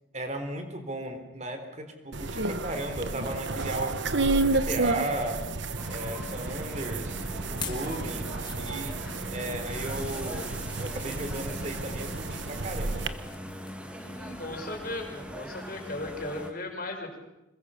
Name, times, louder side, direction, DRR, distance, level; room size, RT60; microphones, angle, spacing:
voice 1, 0.1-5.5 5.9-7.2 7.6-9.0 9.3-13.2, right 1 dB, 35° right, 7 dB, 3.8 m, -36 dB
sound 1, 2.1-13.1, right 3 dB, 70° right, 1.3 m, -31 dB
sound 2, 5.7-16.5, equal, 5° right, 2.4 m, -41 dB
sound 3, 7.5-10.1 10.7-11.3 11.7-13.4 13.6-13.9 14.3-14.4, left 6 dB, 20° left, 1.9 m, -45 dB
voice 2, 7.6-8.1 13.9-17.2, left 2 dB, 45° left, 2 dB, 5.6 m, -37 dB
26.5 x 22.0 x 7.1 m, 0.97 s
head